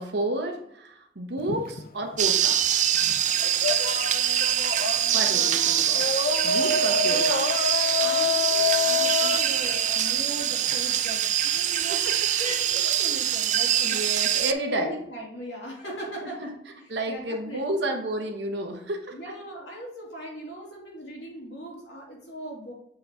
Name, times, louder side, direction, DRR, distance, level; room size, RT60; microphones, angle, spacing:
voice 1, 0.0-2.6 5.1-6.1 6.4-7.4 11.9-12.6 13.8-15.0 16.2-16.3 16.9-19.2, right 1 dB, 65° right, 3 dB, 1.2 m, -31 dB
sound 1, 1.4-2.6 2.9-10.7, left 5 dB, 50° left, 0.5 m, -28 dB
sound 2, 2.2-14.5, right 10 dB, 40° right, 0.4 m, -24 dB
voice 2, 6.7-7.5 8.0-12.0 12.4-14.0 14.7-16.5 17.1-17.6 19.1-22.7, right 1 dB, 70° left, -3 dB, 2.7 m, -39 dB
7.3 x 5.1 x 3.7 m, 0.74 s
head